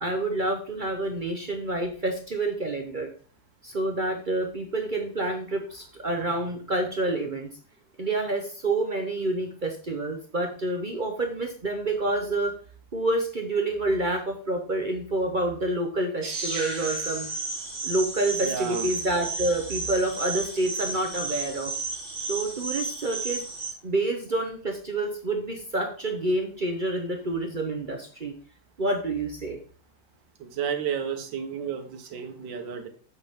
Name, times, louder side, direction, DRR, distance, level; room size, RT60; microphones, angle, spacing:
voice 1, 0.0-3.1 3.6-7.5 8.0-12.5 12.9-17.3 17.8-21.7 22.3-23.4 23.8-28.3 28.8-29.6, right 2 dB, 45° right, 3 dB, 0.6 m, -28 dB
sound 1, 16.2-23.7, right 3 dB, 30° right, 2.0 m, -33 dB
voice 2, 18.3-18.9 30.4-32.9, right 7 dB, 70° right, 4 dB, 1.8 m, -32 dB
8.1 x 6.8 x 3.6 m, 0.43 s
omnidirectional pair, 2.1 m